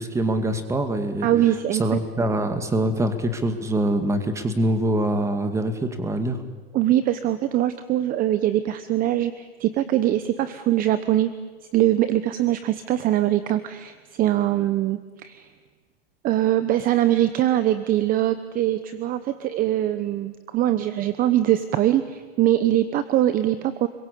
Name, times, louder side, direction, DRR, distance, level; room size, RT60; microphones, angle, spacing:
voice 1, 0.0-1.3 1.8-6.4, right 1 dB, 10° right, 8 dB, 2.2 m, -24 dB
voice 2, 1.2-2.0 6.7-11.3 11.7-15.5 16.2-23.9, right 13 dB, 30° right, 12 dB, 1.1 m, -22 dB
29.5 x 22.5 x 8.5 m, 1.3 s
hypercardioid pair, 135°, 30 cm